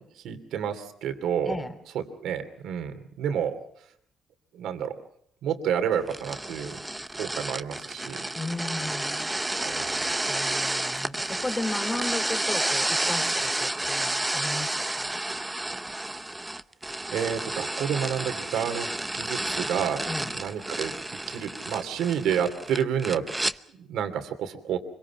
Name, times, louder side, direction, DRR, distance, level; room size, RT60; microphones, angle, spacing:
voice 1, 0.2-1.5 1.9-3.6 4.5-5.0 5.4-6.8 7.2-8.2 9.6-10.1 17.1-20.0 20.3-20.9 21.3-23.2 23.8-24.8, right 8 dB, 80° right, 8 dB, 2.7 m, -29 dB
voice 2, 1.4-1.8 8.3-9.3 10.3-15.2 20.0-20.3, left 2 dB, 20° left, 8 dB, 3.3 m, -35 dB
sound 1, 6.1-23.6, right 1 dB, 10° right, 0.9 m, -30 dB
25.0 x 23.5 x 5.9 m, 0.69 s
cardioid pair, 90°, 0 cm